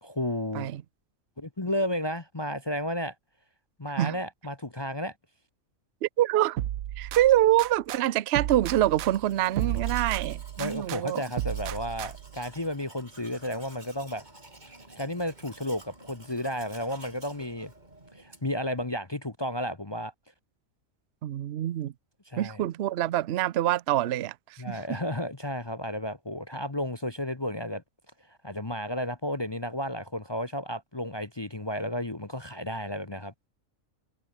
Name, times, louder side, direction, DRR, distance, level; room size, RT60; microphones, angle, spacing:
voice 1, 0.0-0.7 1.4-3.1 3.8-5.1 10.6-14.2 15.0-17.7 18.1-20.1 22.3-22.6 24.6-27.8 28.4-33.5, left 1 dB, 20° left, 1.0 m, -32 dB
voice 2, 6.0-6.6 7.0-11.2 21.2-21.9 22.4-25.0, right 13 dB, 60° right, 0.8 m, -25 dB
sound 1, 6.6-8.0 8.3-11.0 11.4-12.4, right 12 dB, 80° right, 1.1 m, -33 dB
Domestic sounds home sounds, 8.5-18.6, right 2 dB, 30° right, 3.8 m, -51 dB
omnidirectional pair, 1.4 m